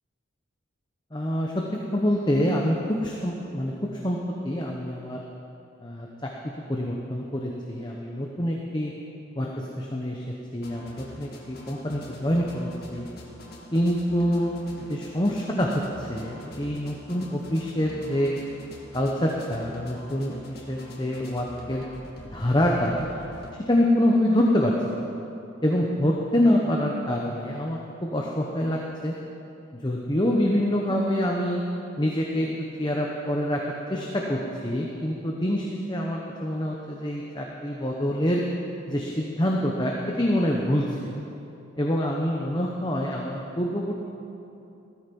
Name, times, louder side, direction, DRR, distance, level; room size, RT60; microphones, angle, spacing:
voice 1, 1.1-1.6 1.9-3.7 4.0-4.2 4.4-5.2 5.8-8.9 9.4-9.5 9.8-10.2 10.5-13.1 13.7-15.7 16.0-18.3 18.9-21.8 22.3-23.1 23.6-25.0 25.6-29.1 29.8-31.6 32.0-33.6 33.9-38.4 38.9-41.2 41.8-43.9, equal, 20° left, -1 dB, 1.0 m, -26 dB
sound 1, 10.6-23.5, left 1 dB, 45° left, 1.9 m, -45 dB
16.0 x 14.0 x 5.4 m, 2.8 s
head